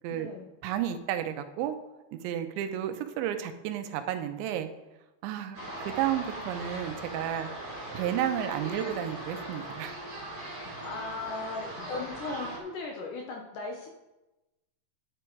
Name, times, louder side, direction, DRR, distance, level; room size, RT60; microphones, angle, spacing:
voice 1, 0.1-0.5 10.8-13.9, left 3 dB, 80° left, 1 dB, 1.9 m, -37 dB
voice 2, 0.6-1.8 2.1-4.7 5.2-5.6 5.9-7.5 7.9-10.0, right 11 dB, 85° right, 8 dB, 3.1 m, -32 dB
sound 1, 5.5-12.6, right 1 dB, 25° right, 3.7 m, -39 dB
10.0 x 9.7 x 4.6 m, 1.0 s
omnidirectional pair, 5.1 m